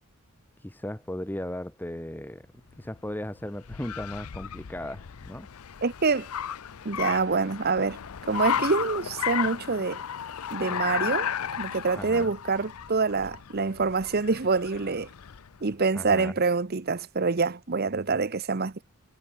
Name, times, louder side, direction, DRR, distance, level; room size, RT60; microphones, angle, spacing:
voice 1, 0.6-2.5 2.8-5.5 12.0-12.3 15.9-16.3, left 1 dB, 10° left, 0.9 m, -36 dB
Car, 2.7-15.6, left 8 dB, 90° left, 0.6 m, -34 dB
voice 2, 5.8-6.3 6.8-8.0 8.3-10.0 10.5-11.3 11.6-15.1 15.6-18.8, right 4 dB, 45° right, 0.8 m, -26 dB
head